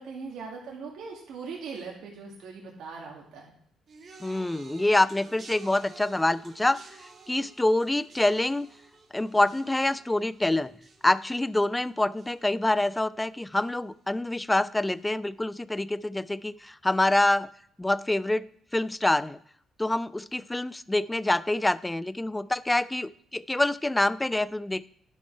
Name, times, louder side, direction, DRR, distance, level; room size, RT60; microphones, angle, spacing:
voice 1, 0.0-3.5, right 5 dB, 75° right, -2 dB, 2.0 m, -40 dB
sound 1, 3.9-13.2 13.5-14.1 14.9-15.0, right 4 dB, 50° right, 1.3 m, -52 dB
voice 2, 4.2-6.8 7.3-8.7 9.1-10.7 11.0-17.5 17.8-18.5 18.7-19.4 19.8-24.9, left 1 dB, 10° left, 18 dB, 0.3 m, -26 dB
11.0 x 5.7 x 4.5 m, 0.64 s
cardioid pair, 90°, 0 cm